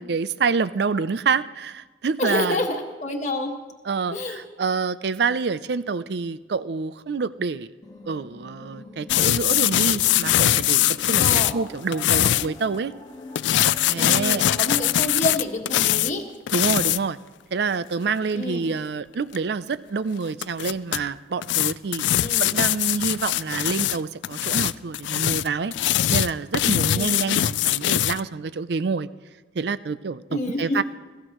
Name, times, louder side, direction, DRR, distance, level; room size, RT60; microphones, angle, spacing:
voice 1, 0.0-2.6 3.9-7.7 8.1-12.9 13.9-14.4 16.5-17.2 17.5-22.0 22.4-25.7 26.1-29.1 29.6-30.8, right 5 dB, 60° right, 15 dB, 0.4 m, -27 dB
voice 2, 2.2-3.5 4.1-4.4 11.2-11.5 13.9-16.2 18.3-18.7 22.2-22.6 26.8-27.3 30.3-30.8, left 2 dB, 40° left, 1 dB, 1.6 m, -28 dB
sound 1, 7.8-15.8, left 2 dB, 20° left, 1.5 m, -43 dB
sound 2, 9.1-12.5 13.4-16.1 16.5-17.0 19.3-19.4 20.4-21.0 21.4-24.0 24.2-28.2, left 13 dB, 75° left, 0.3 m, -22 dB
22.0 x 14.5 x 3.1 m, 1.2 s
head